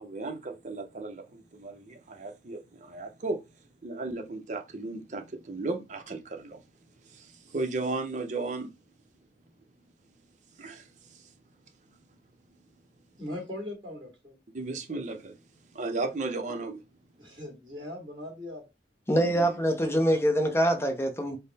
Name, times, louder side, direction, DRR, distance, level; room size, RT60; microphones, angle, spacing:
voice 1, 0.0-3.4 3.8-6.6 7.1-8.7 10.6-11.2 14.5-15.4 15.7-16.8 19.2-19.5, right 3 dB, 45° right, 0.6 m, -35 dB
voice 2, 13.2-14.4 17.2-18.6, left 1 dB, 25° right, 1.6 m, -40 dB
voice 3, 19.1-21.4, equal, 15° left, 0.5 m, -24 dB
3.5 x 2.0 x 4.0 m
head